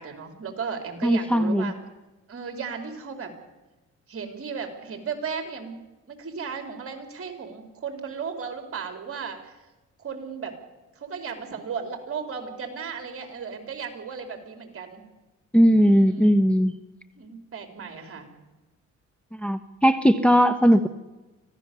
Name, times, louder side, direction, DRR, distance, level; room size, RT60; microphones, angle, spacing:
voice 1, 0.0-1.7 2.3-3.3 4.1-5.8 6.1-9.5 10.0-10.6 11.0-15.0 15.8-16.3 17.2-18.3, right 6 dB, 45° right, 5 dB, 4.2 m, -35 dB
voice 2, 1.0-1.7 15.5-16.7 19.3-20.9, equal, 5° left, 6 dB, 1.1 m, -19 dB
25.5 x 16.5 x 7.0 m, 1.1 s
cardioid pair, 90°, 30 cm